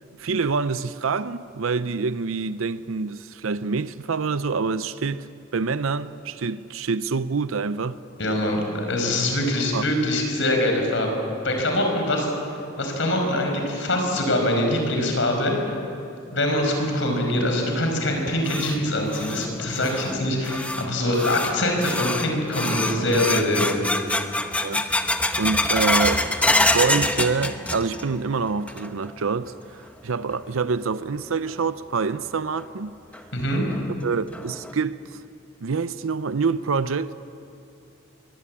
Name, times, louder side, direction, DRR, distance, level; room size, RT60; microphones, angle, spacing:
voice 1, 0.2-8.0 9.7-9.8 24.6-24.8 25.4-32.9 34.0-35.2 35.6-37.1, right 4 dB, 80° right, 0.6 m, -26 dB
voice 2, 8.2-11.1 11.4-12.3 12.8-15.5 16.3-23.8 33.3-33.6, left 1 dB, 65° left, 5.3 m, -23 dB
sound 1, 18.1-28.2 28.5-29.1 29.5-29.6 30.3-30.4 32.0-32.1 32.6-32.7 33.1-33.2 33.7-33.8 34.3-34.7, left 1 dB, 5° left, 0.9 m, -26 dB
23.0 x 18.5 x 8.6 m
head